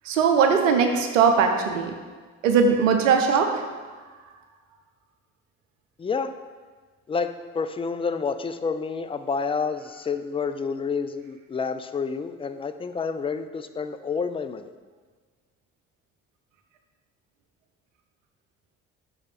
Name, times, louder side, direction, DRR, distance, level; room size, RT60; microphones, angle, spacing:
voice 1, 0.0-1.9 2.4-3.7, right 6 dB, 85° right, 4 dB, 0.7 m, -20 dB
voice 2, 6.0-6.3 7.1-14.7, left 5 dB, 15° left, 10 dB, 0.3 m, -29 dB
5.4 x 4.8 x 5.0 m, 1.4 s
figure-of-eight pair, 45°, 38 cm